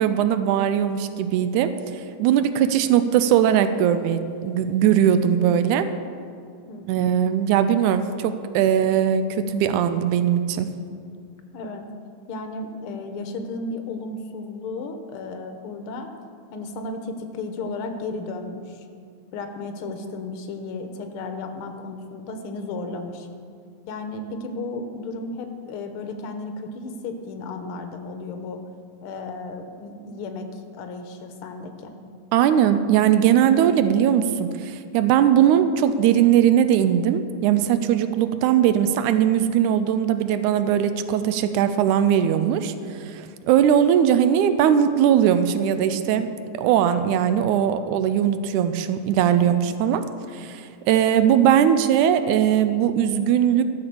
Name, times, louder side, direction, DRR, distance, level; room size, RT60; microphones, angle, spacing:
voice 1, 0.0-1.7 2.0-5.9 6.9-10.7 32.3-46.3 46.5-50.0 50.3-53.6, right 9 dB, 90° right, 11 dB, 2.1 m, -20 dB
voice 2, 6.7-7.1 11.5-11.9 12.3-16.1 16.5-18.8 19.3-23.3 23.9-28.6 29.0-31.9, left 3 dB, 70° left, 6 dB, 1.4 m, -34 dB
14.0 x 6.9 x 6.9 m, 2.2 s
omnidirectional pair, 3.4 m